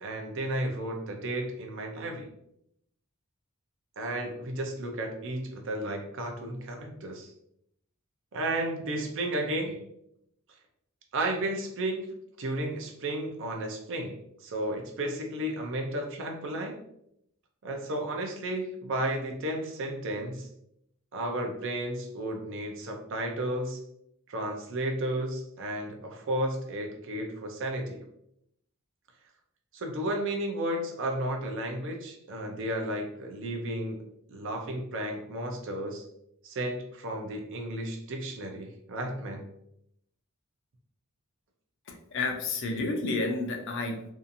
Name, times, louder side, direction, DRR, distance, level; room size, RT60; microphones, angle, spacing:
voice 1, 0.0-2.3 4.0-7.3 8.3-9.8 11.1-12.1 12.4-16.8 17.6-20.5 21.1-23.8 24.3-28.0 29.7-34.0 34.3-36.1 36.4-39.5, right 1 dB, 60° right, 3 dB, 0.5 m, -33 dB
voice 2, 41.9-44.0, left 3 dB, 55° left, 3 dB, 0.5 m, -30 dB
2.7 x 2.4 x 2.5 m, 0.75 s
head